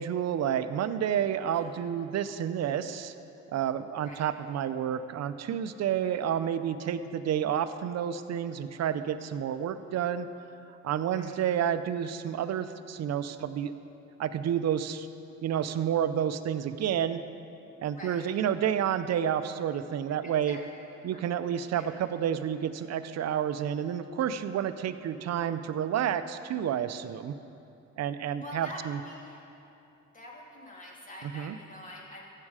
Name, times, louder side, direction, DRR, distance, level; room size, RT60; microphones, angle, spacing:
voice 1, 0.0-3.1 3.5-10.3 10.8-13.7 14.2-15.1 15.4-17.2 17.8-20.6 21.0-27.3 28.0-29.0 31.3-31.6, right 9 dB, 60° right, 12 dB, 0.6 m, -30 dB
voice 2, 1.5-1.8 4.0-4.3 6.0-6.2 11.1-11.4 18.0-18.3 20.2-20.6 21.1-21.2 21.7-22.0 28.4-29.4 30.1-32.3, left 1 dB, 25° left, -3 dB, 2.7 m, -46 dB
14.5 x 7.6 x 4.9 m, 2.8 s
cardioid pair, 90°, 30 cm